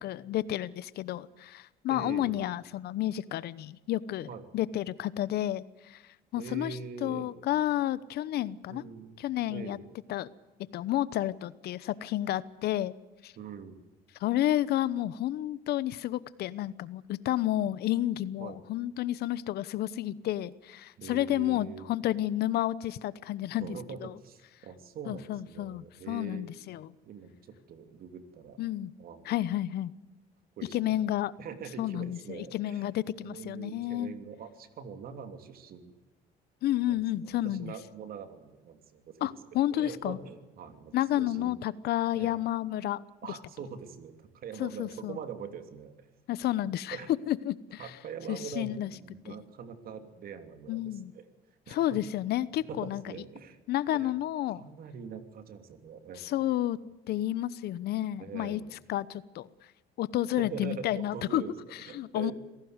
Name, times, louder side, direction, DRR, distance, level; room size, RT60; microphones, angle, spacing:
voice 1, 0.0-6.0 6.3-8.8 9.2-9.8 10.1-10.3 10.7-12.9 13.2-13.3 14.2-23.7 24.0-24.1 25.1-26.9 28.6-28.9 29.3-29.9 30.7-31.3 31.8-34.1 36.6-37.7 39.2-40.2 40.9-43.0 44.6-45.2 46.3-47.0 47.3-47.9 48.3-48.9 49.2-49.4 50.7-51.1 51.7-53.0 53.7-54.6 56.2-56.8 57.1-58.6 58.9-59.5 60.0-61.4 61.9-62.3, left 13 dB, 70° left, 19 dB, 0.9 m, -31 dB
voice 2, 1.9-2.4 4.3-4.5 6.3-7.3 8.7-9.2 9.5-9.8 13.4-13.8 18.4-18.6 21.0-21.9 23.6-26.5 27.0-28.6 29.0-29.3 30.6-31.0 31.4-32.9 33.2-35.9 36.8-39.3 39.7-41.5 42.1-42.3 43.2-46.1 46.9-47.1 47.8-51.2 51.7-52.0 52.6-53.6 53.9-54.1 54.5-56.4 58.2-58.7 60.4-62.3, right 6 dB, 60° right, 8 dB, 3.0 m, -43 dB
26.0 x 17.5 x 8.1 m, 1.1 s
cardioid pair, 110°, 17 cm